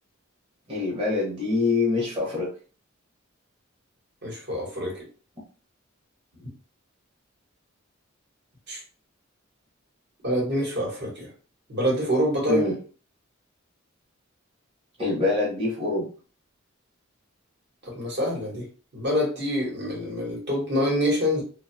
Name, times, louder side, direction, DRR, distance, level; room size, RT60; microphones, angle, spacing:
voice 1, 0.7-2.5 12.5-12.8 15.0-16.0, left 3 dB, 25° right, -6 dB, 0.9 m, -25 dB
voice 2, 4.2-5.0 6.4-6.5 8.7-8.8 10.2-11.3 11.7-12.6 17.8-18.7 18.9-21.4, equal, 55° right, -3 dB, 1.0 m, -26 dB
2.5 x 2.2 x 2.6 m, 0.39 s
head